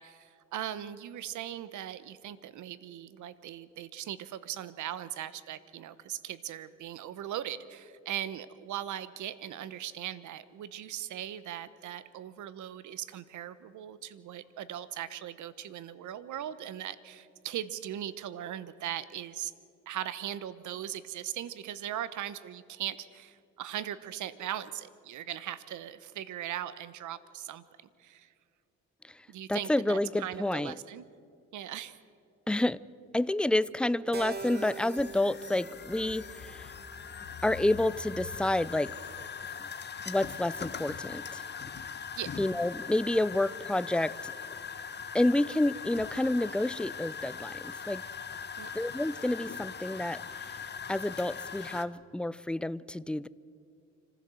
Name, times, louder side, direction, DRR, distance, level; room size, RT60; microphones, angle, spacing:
voice 1, 0.0-19.5 19.9-27.6 28.0-28.3 29.3-31.0 31.5-32.0 42.2-42.3 48.6-48.9, right 11 dB, 75° right, 15 dB, 1.0 m, -39 dB
voice 2, 29.5-30.7 32.5-32.8 33.1-36.7 37.4-38.9 39.6-39.7 40.1-41.4 42.4-44.3 45.1-48.0 48.7-50.6 50.9-53.3, left 1 dB, 5° left, 18 dB, 0.4 m, -29 dB
Keyboard (musical), 34.1-38.5, right 5 dB, 35° right, 0.9 m, -45 dB
sound 1, 34.3-51.8, left 6 dB, 35° left, 1.1 m, -41 dB
25.5 x 15.5 x 7.7 m, 2.4 s
cardioid pair, 90°, 30 cm